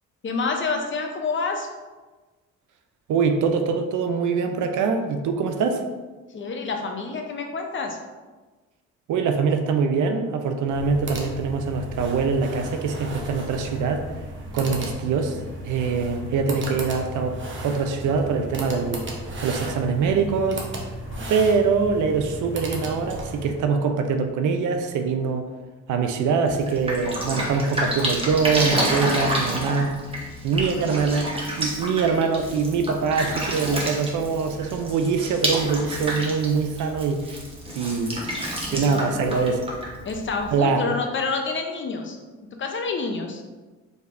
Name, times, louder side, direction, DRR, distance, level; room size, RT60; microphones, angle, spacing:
voice 1, 0.2-1.7 6.3-8.0 14.6-14.9 21.1-21.4 38.7-39.5 40.0-42.2 42.6-43.4, left 4 dB, 40° left, 3 dB, 0.7 m, -28 dB
voice 2, 3.1-5.8 9.1-14.0 14.5-15.4 15.6-17.3 17.6-20.7 21.3-25.5 25.9-30.0 30.4-31.3 31.6-37.2 37.7-38.2 38.7-39.6 40.5-40.9, right 5 dB, 75° right, 5 dB, 0.6 m, -23 dB
sound 1, 10.6-23.6, right 1 dB, 40° right, 0.9 m, -34 dB
Drip, 26.5-40.5, right 1 dB, 20° right, 1.1 m, -29 dB
5.1 x 3.2 x 2.5 m, 1.3 s
cardioid pair, 90°, 30 cm